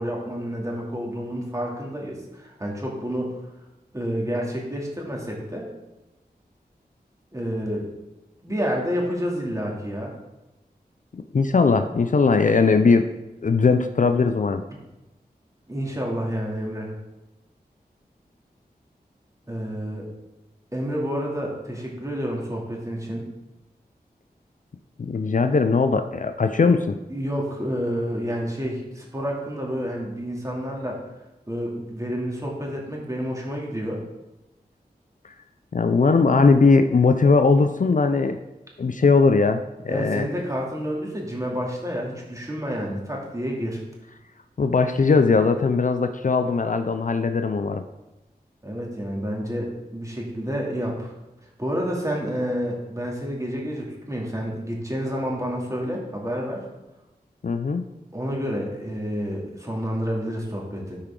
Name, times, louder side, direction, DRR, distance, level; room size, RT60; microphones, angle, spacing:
voice 1, 0.0-3.3 3.9-5.7 7.3-7.9 8.4-10.1 15.7-16.9 19.5-20.1 20.7-23.2 27.1-31.0 31.5-34.0 39.9-43.8 48.6-49.7 49.9-51.1 51.6-56.6 58.1-61.0, equal, 20° right, -2 dB, 2.5 m, -29 dB
voice 2, 11.1-13.1 13.4-14.6 25.0-27.0 35.7-38.4 38.8-40.3 44.6-47.8 57.4-57.8, left 4 dB, 50° left, 8 dB, 0.5 m, -19 dB
13.0 x 4.9 x 3.8 m, 1.0 s
cardioid pair, 45°, 17 cm